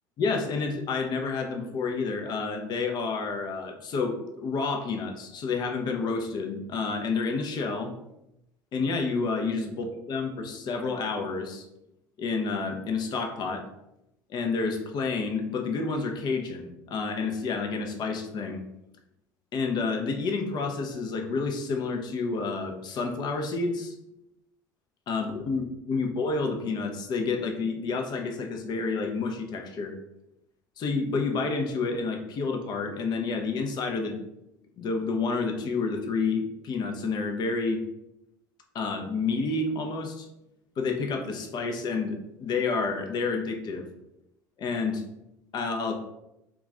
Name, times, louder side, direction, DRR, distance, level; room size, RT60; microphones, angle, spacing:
voice 1, 0.2-7.9 8.7-11.7 12.2-13.7 14.3-18.6 19.5-23.9 25.1-29.9 30.8-34.1 34.8-37.8 38.7-40.3 40.8-43.9 44.6-45.0 45.5-45.9, left 4 dB, 45° left, 4 dB, 0.7 m, -29 dB
2.9 x 2.4 x 3.6 m, 0.87 s
hypercardioid pair, 70°, 10 cm